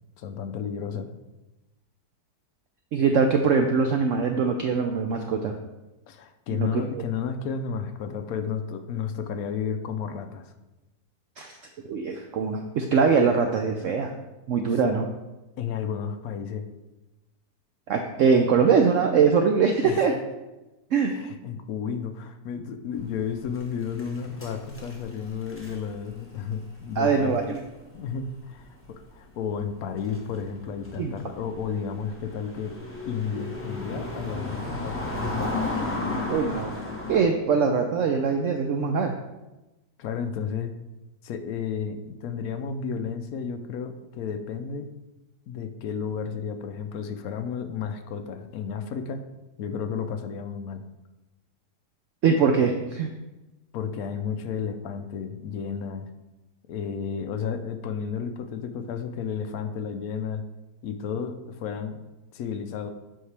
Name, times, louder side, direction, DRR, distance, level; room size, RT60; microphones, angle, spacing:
voice 1, 0.2-1.1 6.1-10.5 14.7-14.8 15.6-16.7 19.8-20.1 21.1-27.6 27.9-32.8 33.1-35.0 40.0-40.7 41.2-44.9 45.5-49.2 49.6-50.8 53.7-56.1 56.7-60.4 60.8-62.0 62.3-62.9, left 6 dB, 70° left, 7 dB, 0.9 m, -32 dB
voice 2, 2.9-5.5 6.5-7.0 11.4-11.6 11.9-14.1 14.5-15.1 17.9-20.1 20.9-21.1 27.0-27.6 31.0-31.1 36.3-36.7 37.1-39.1 52.2-53.1, right 5 dB, 80° right, 4 dB, 0.7 m, -22 dB
sound 1, 23.0-28.6 28.9-29.0 29.7-37.2, left 2 dB, 15° left, 0.5 m, -34 dB
7.8 x 5.4 x 3.3 m, 1.0 s
omnidirectional pair, 1.9 m